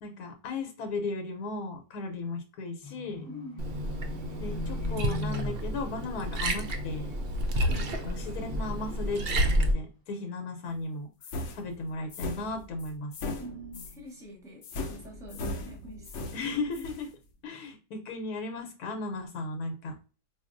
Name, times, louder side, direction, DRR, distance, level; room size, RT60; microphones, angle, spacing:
voice 1, 0.0-3.3 4.4-7.1 7.5-11.1 11.5-13.1 16.3-17.1 17.4-20.0, left 3 dB, 80° left, 5 dB, 1.2 m, -36 dB
Livestock farm animals working animals, 2.8-7.6 7.9-8.6 9.0-9.1, left 1 dB, 40° left, 0.9 m, -41 dB
voice 2, 3.2-3.7 7.6-8.0 13.4-16.3, equal, 5° right, 0 dB, 0.8 m, -45 dB
Liquid, 3.6-9.7, equal, 65° right, 0.6 m, -30 dB
sound 1, 11.2-14.0 14.6-17.1, left 2 dB, 65° left, 0.8 m, -38 dB
4.3 x 2.3 x 2.4 m, 0.35 s
omnidirectional pair, 1.6 m